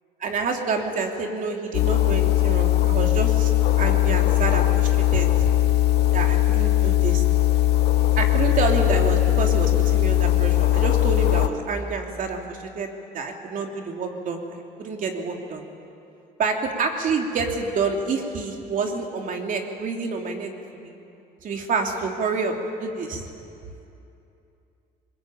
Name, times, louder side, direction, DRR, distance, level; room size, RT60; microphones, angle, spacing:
voice 1, 0.2-3.5 3.8-5.5 6.1-7.2 8.2-15.6 16.4-21.0 21.4-23.3, right 4 dB, 55° right, 2 dB, 3.0 m, -28 dB
sound 1, 1.7-11.5, left 13 dB, 75° left, 1.1 m, -20 dB
22.0 x 21.5 x 8.9 m, 2.8 s
cardioid pair, 110°, 17 cm